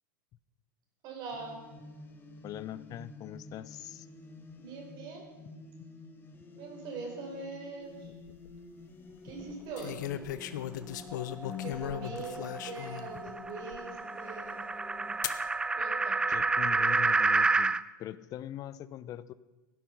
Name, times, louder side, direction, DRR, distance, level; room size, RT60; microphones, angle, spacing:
voice 1, 1.0-1.6 4.6-5.3 6.6-8.1 9.2-10.0 11.6-14.6 15.8-16.2, right 4 dB, 45° right, 1 dB, 5.1 m, -42 dB
sound 1, 1.3-15.2, left 3 dB, 20° left, 1.7 m, -50 dB
voice 2, 2.4-4.1 11.4-11.8 16.3-19.3, left 12 dB, 35° left, 18 dB, 0.7 m, -42 dB
sound 2, 8.1-8.5 9.8-13.1 13.7-13.8 15.2-15.4 16.3-16.8, left 11 dB, 65° left, 0.9 m, -37 dB
sound 3, 11.1-17.8, right 3 dB, 10° right, 0.4 m, -30 dB
17.0 x 10.0 x 5.6 m, 1.1 s
hypercardioid pair, 100°, 11 cm